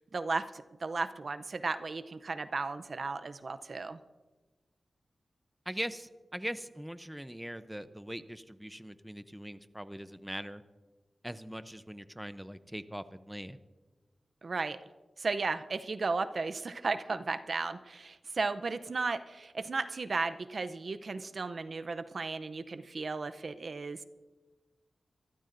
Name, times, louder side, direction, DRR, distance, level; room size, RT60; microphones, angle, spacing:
voice 1, 0.0-4.0 14.4-14.8 15.2-24.0, right 3 dB, 60° right, 11 dB, 0.6 m, -35 dB
voice 2, 5.7-10.6 11.2-13.6, equal, 5° right, 12 dB, 0.6 m, -41 dB
25.0 x 13.5 x 2.6 m, 1.3 s
cardioid pair, 65°, 0 cm